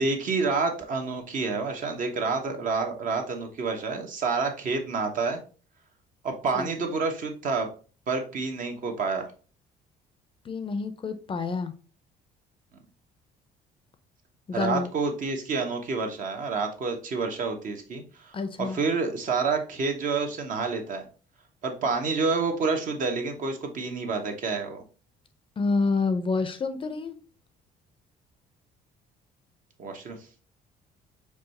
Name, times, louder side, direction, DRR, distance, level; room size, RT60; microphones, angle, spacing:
voice 1, 0.0-5.4 6.2-7.7 8.1-9.3 14.5-21.0 21.6-24.8 29.8-30.2, right 4 dB, 50° right, 4 dB, 1.0 m, -28 dB
voice 2, 10.4-11.7 14.5-14.9 18.3-18.8 25.6-27.2, left 4 dB, 30° left, 9 dB, 0.5 m, -28 dB
4.8 x 2.3 x 4.1 m, 0.38 s
cardioid pair, 110°, 17 cm